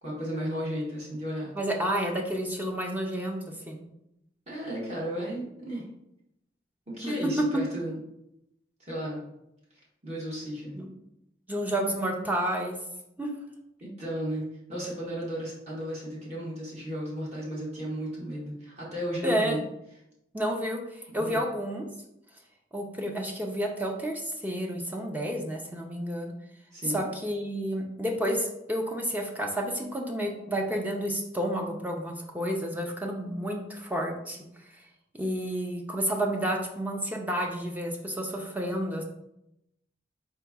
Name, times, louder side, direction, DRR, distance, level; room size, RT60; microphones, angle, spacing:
voice 1, 0.0-1.5 4.5-5.9 6.9-8.0 8.8-9.3 10.0-10.8 13.8-19.6 21.1-21.4 26.7-27.0, equal, 40° right, -6 dB, 1.1 m, -34 dB
voice 2, 1.6-3.4 3.7-3.8 7.0-7.1 10.7-10.9 11.5-12.8 13.2-13.3 19.2-19.6 20.3-21.9 22.7-26.3 26.9-34.4 35.1-39.0, equal, 10° right, 1 dB, 0.4 m, -30 dB
4.5 x 2.9 x 3.5 m, 0.83 s
head